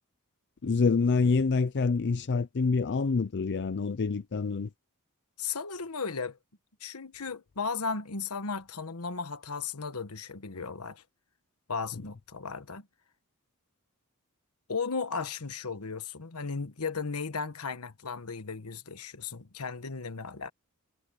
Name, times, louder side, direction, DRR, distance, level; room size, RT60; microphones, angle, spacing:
voice 1, 0.6-4.7 5.7-5.8 11.9-12.0, left 4 dB, 50° left, 0.5 m, -27 dB
voice 2, 5.4-6.4 6.8-11.0 11.7-12.9 14.7-20.5, left 5 dB, 80° left, 1.4 m, -35 dB
head